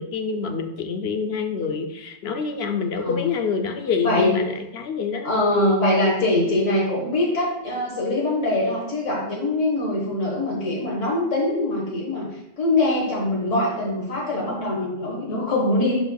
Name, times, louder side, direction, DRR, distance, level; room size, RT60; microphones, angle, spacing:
voice 1, 0.0-5.3, left 5 dB, 65° left, 6 dB, 0.9 m, -26 dB
voice 2, 3.0-3.3 4.0-4.3 5.2-12.3 12.6-16.0, left 1 dB, 80° left, -3 dB, 1.8 m, -23 dB
11.0 x 4.4 x 2.3 m, 0.94 s
omnidirectional pair, 1.2 m